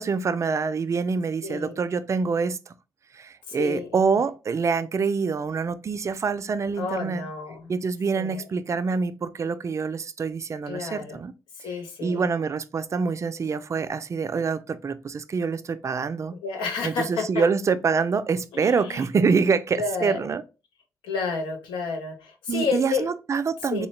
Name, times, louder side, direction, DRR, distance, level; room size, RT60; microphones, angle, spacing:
voice 1, 0.0-2.7 3.1-7.2 7.7-11.3 11.6-16.4 16.8-20.4 22.5-23.9, right 5 dB, 40° right, 0.4 m, -26 dB
voice 2, 1.4-1.8 3.5-3.9 6.8-7.7 8.2-8.4 10.7-11.2 11.6-12.2 16.4-17.4 18.5-19.0 19.8-20.2 21.0-23.0 23.7-23.9, left 4 dB, 85° left, 0.7 m, -30 dB
3.7 x 2.2 x 3.1 m
supercardioid pair, 60°, 8 cm